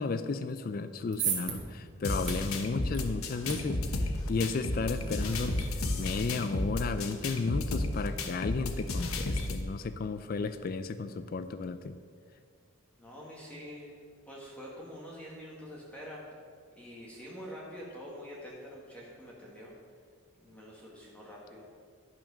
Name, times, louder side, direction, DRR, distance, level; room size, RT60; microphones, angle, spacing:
voice 1, 0.0-12.0, left 4 dB, 45° left, 11 dB, 0.3 m, -34 dB
sound 1, 0.8-7.1, right 6 dB, 55° right, 1.6 m, -40 dB
sound 2, 2.0-9.6, left 2 dB, 85° left, 0.9 m, -33 dB
voice 2, 13.0-13.9 14.3-16.2 16.7-19.7 20.4-21.7, equal, 5° left, -5 dB, 1.6 m, -46 dB
11.0 x 6.0 x 6.2 m, 2.1 s
head